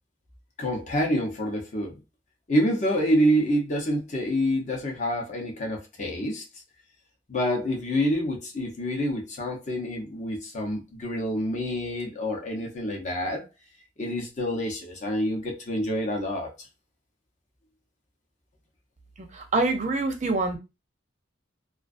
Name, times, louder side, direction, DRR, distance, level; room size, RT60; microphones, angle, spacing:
voice 1, 0.6-2.0 2.5-6.4 7.3-13.4 14.0-16.5, equal, 35° left, 0.7 m, -27 dB
voice 2, 19.3-20.6, right 3 dB, 35° right, 0.5 m, -25 dB
2.3 x 2.3 x 2.5 m
head